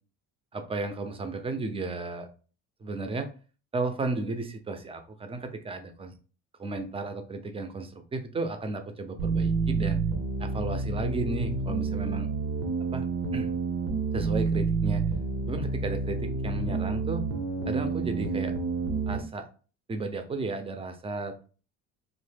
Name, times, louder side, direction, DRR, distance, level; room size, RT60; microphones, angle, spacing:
voice 1, 0.5-2.3 2.8-3.3 3.7-6.1 6.6-10.0 10.4-12.3 12.9-13.1 13.3-13.5 14.1-15.1 15.5-17.2 17.7-18.6 19.1-19.5 19.9-21.4, right 3 dB, 15° right, 7 dB, 0.5 m, -33 dB
sound 1, 9.2-19.2, right 4 dB, 75° right, 0.8 m, -29 dB
3.0 x 2.0 x 3.3 m, 0.37 s
cardioid pair, 105°, 33 cm